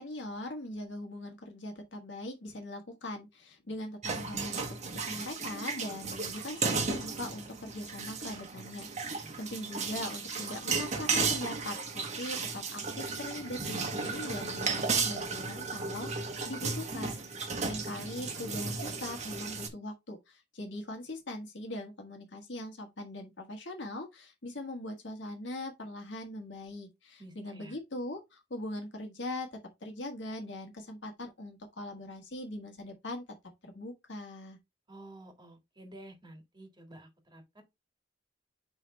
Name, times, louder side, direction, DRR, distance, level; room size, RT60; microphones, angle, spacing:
voice 1, 0.0-4.5 4.9-33.2 33.6-34.6, left 1 dB, 70° left, 1.7 m, -41 dB
sound 1, 4.0-19.7, right 4 dB, 40° right, 1.3 m, -34 dB
voice 2, 17.7-18.0 27.2-27.8 34.9-37.6, right 1 dB, 25° right, 1.8 m, -51 dB
9.6 x 3.4 x 3.2 m
head